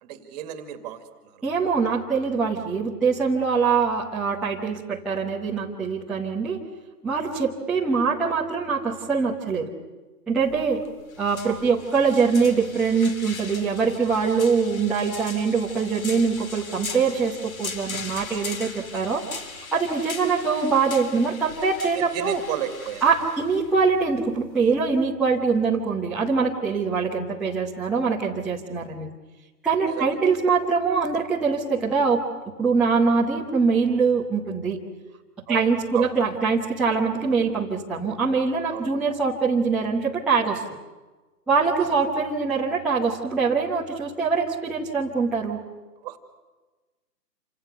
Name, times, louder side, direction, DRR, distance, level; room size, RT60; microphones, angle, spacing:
voice 1, 0.0-1.4 11.4-11.6 21.9-23.0 29.8-30.1 35.5-36.1 38.7-38.9 41.8-42.1 46.0-46.2, right 11 dB, 25° right, 8 dB, 2.3 m, -34 dB
voice 2, 1.4-6.6 7.0-9.7 10.3-10.8 11.2-19.2 19.7-22.4 23.0-29.1 29.6-32.2 32.6-34.8 35.5-40.6 41.5-45.6, right 5 dB, ahead, -9 dB, 0.9 m, -23 dB
sound 1, 10.4-25.1, left 4 dB, 55° left, 3.9 m, -39 dB
28.0 x 26.5 x 6.8 m, 1.2 s
hypercardioid pair, 150°, 49 cm